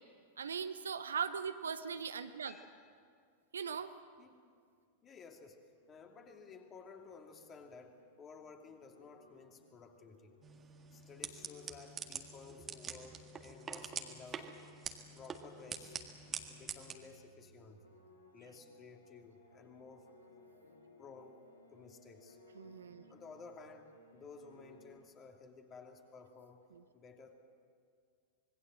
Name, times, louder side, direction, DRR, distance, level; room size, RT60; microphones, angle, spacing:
voice 1, 0.4-2.6 3.5-3.9 22.5-23.0 26.7-26.8, right 6 dB, 70° right, 10 dB, 1.0 m, -39 dB
voice 2, 2.4-3.2 4.2-4.4 5.0-10.4 10.9-14.5 15.1-16.0 16.5-17.8 18.3-20.1 21.0-21.4 21.7-22.4 23.1-26.7 26.9-27.3, left 5 dB, 25° left, 3 dB, 2.8 m, -55 dB
sound 1, 5.8-24.9, left 1 dB, 80° left, 3.7 m, -63 dB
sound 2, 10.4-16.9, right 6 dB, 25° right, 1.8 m, -46 dB
25.5 x 21.5 x 7.6 m, 2.1 s
figure-of-eight pair, 90°, 0 cm